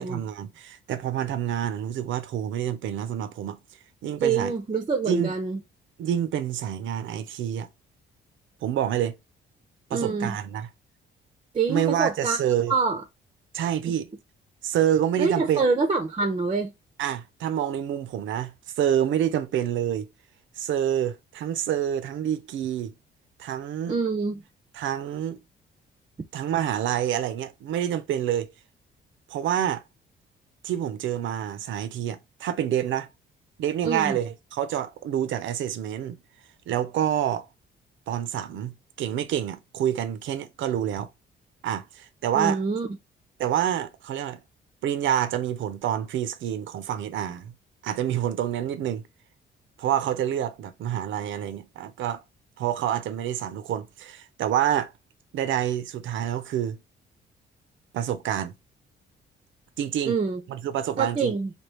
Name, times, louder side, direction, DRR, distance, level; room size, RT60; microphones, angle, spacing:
voice 1, 0.0-3.6 4.0-4.5 5.1-5.3 6.0-7.7 8.6-9.2 9.9-10.7 11.7-12.7 13.5-14.1 14.6-15.6 17.0-20.1 20.6-22.9 23.4-24.0 24.8-25.4 26.3-28.5 29.3-29.8 30.6-33.1 33.6-36.2 36.7-37.5 38.1-41.1 41.6-42.6 43.4-44.4 44.8-47.5 47.8-49.0 49.8-52.2 52.6-54.9 55.3-56.8 57.9-58.5 59.8-60.2 60.5-61.4, right 10 dB, 75° right, 0.6 m, -27 dB
voice 2, 4.2-5.6 9.9-10.4 11.5-12.4 12.7-13.0 13.8-13.9 15.2-16.7 23.9-24.4 33.8-34.2 42.3-43.0 60.1-60.4 61.0-61.5, right 4 dB, 30° right, 0.5 m, -25 dB
3.4 x 2.3 x 3.0 m
cardioid pair, 90°, 20 cm